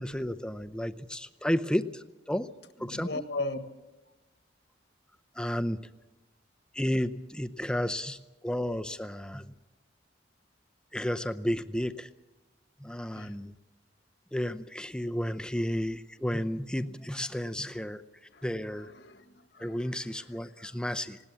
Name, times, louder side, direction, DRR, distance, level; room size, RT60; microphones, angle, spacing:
voice 1, 0.0-2.5 2.8-3.2 5.4-5.8 6.7-9.5 10.9-12.1 12.8-13.5 14.3-18.0 18.4-18.9 19.6-21.2, equal, 5° left, 11 dB, 0.6 m, -32 dB
voice 2, 2.8-3.6 13.1-13.4 18.3-18.4 18.8-20.7, left 2 dB, 70° left, 9 dB, 1.6 m, -38 dB
19.5 x 18.0 x 8.4 m, 1.1 s
head